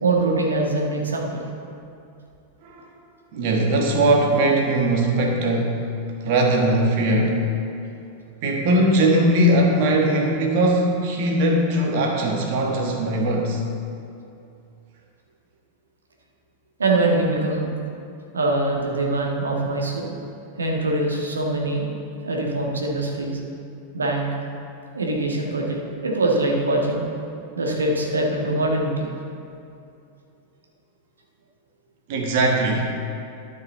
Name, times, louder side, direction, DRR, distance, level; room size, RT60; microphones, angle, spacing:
voice 1, 0.0-1.3 16.8-17.7 18.3-20.0 20.6-21.9 22.2-23.4 23.9-24.3 24.9-27.0 27.6-29.1, right 2 dB, 75° right, -1 dB, 1.4 m, -23 dB
voice 2, 3.3-7.5 8.4-13.6 32.1-32.8, right 1 dB, 50° right, 0 dB, 1.4 m, -20 dB
12.5 x 5.6 x 4.0 m, 2.6 s
figure-of-eight pair, 90°, 0 cm